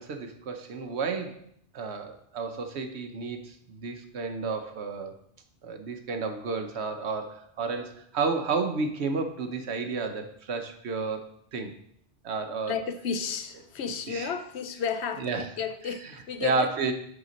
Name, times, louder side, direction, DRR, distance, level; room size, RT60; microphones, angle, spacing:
voice 1, 0.0-1.4 1.7-5.2 5.6-11.7 12.2-12.7 14.1-14.3 15.2-15.5 16.4-16.9, right 4 dB, 70° right, 1.1 m, -31 dB
voice 2, 12.7-16.7, left 6 dB, 70° left, 0.9 m, -32 dB
6.8 x 5.8 x 5.2 m
omnidirectional pair, 1.2 m